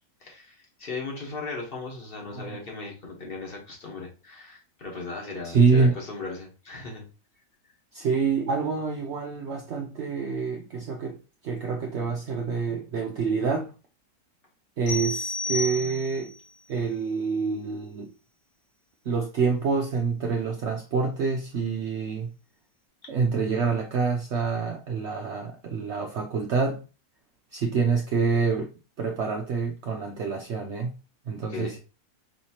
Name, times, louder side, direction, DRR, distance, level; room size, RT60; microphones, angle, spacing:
voice 1, 0.2-7.0 31.4-31.8, left 3 dB, 35° left, 1.3 m, -37 dB
voice 2, 5.4-6.0 7.9-11.2 11.4-13.7 14.8-16.3 16.7-18.1 19.1-22.3 23.1-26.8 27.5-28.7 29.0-30.9 31.3-31.8, right 5 dB, 75° right, 0.6 m, -26 dB
sound 1, 14.9-16.4, left 2 dB, 70° left, 1.6 m, -31 dB
5.6 x 2.9 x 2.9 m
omnidirectional pair, 1.9 m